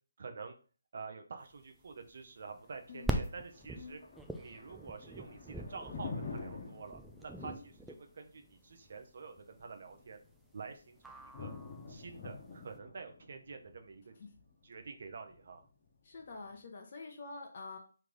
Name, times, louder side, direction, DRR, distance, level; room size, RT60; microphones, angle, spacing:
voice 1, 0.2-0.5 0.9-4.0 4.4-7.7 8.0-10.2 10.5-11.5 11.9-14.1 14.6-15.7, right 4 dB, 55° right, 6 dB, 0.7 m, -48 dB
sound 1, 1.6-12.6, right 1 dB, 5° right, 0.3 m, -43 dB
Thunder, 2.5-16.5, left 4 dB, 30° left, 1.1 m, -49 dB
voice 2, 16.0-17.8, left 3 dB, 45° left, 2 dB, 0.8 m, -46 dB
3.3 x 3.3 x 3.8 m, 0.39 s
hypercardioid pair, 160°, 0 cm